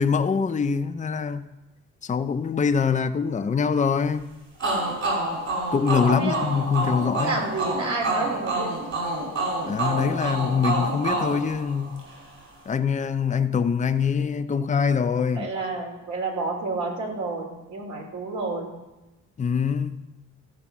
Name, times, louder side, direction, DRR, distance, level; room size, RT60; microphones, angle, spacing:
voice 1, 0.0-1.5 2.0-4.3 5.7-7.4 9.6-12.1 12.7-15.5 19.4-20.0, left 6 dB, 25° left, 0.6 m, -24 dB
sound 1, 4.6-12.2, right 2 dB, 55° right, 4.9 m, -28 dB
voice 2, 6.0-6.4 7.2-8.7 15.3-18.7, right 3 dB, 70° right, 3.2 m, -30 dB
14.0 x 5.1 x 7.2 m
cardioid pair, 90°, 30 cm